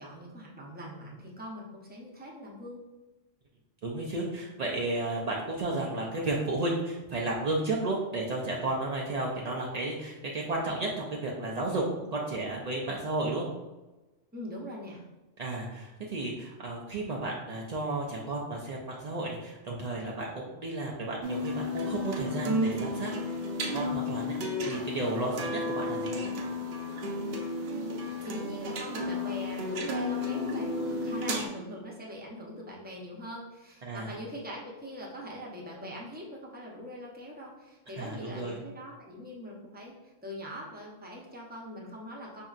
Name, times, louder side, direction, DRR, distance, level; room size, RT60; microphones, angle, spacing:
voice 1, 0.0-2.8 14.3-15.0 27.6-42.4, equal, 10° right, -3 dB, 0.5 m, -42 dB
voice 2, 3.8-11.8 12.1-13.5 15.4-23.1 23.7-24.3 24.7-26.2 33.8-34.1 38.0-38.6, right 2 dB, 80° right, -3 dB, 0.3 m, -33 dB
sound 1, 21.2-31.5, left 1 dB, 60° right, 0.8 m, -32 dB
5.2 x 2.7 x 2.4 m, 1.1 s
omnidirectional pair, 1.3 m